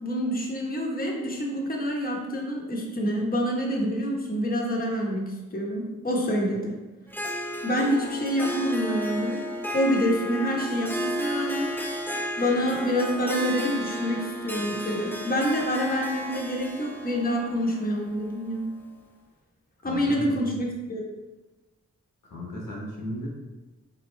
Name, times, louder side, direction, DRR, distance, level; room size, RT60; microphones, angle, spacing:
voice 1, 0.0-6.7 7.6-9.4 9.7-11.7 12.4-18.7 19.8-21.0, equal, 25° left, -2 dB, 1.0 m, -27 dB
Harp, 7.1-18.9, equal, 5° left, 0.5 m, -33 dB
voice 2, 19.8-20.5 22.3-23.3, equal, 80° left, -3 dB, 1.1 m, -35 dB
3.7 x 3.0 x 3.3 m, 1.1 s
cardioid pair, 40°, 32 cm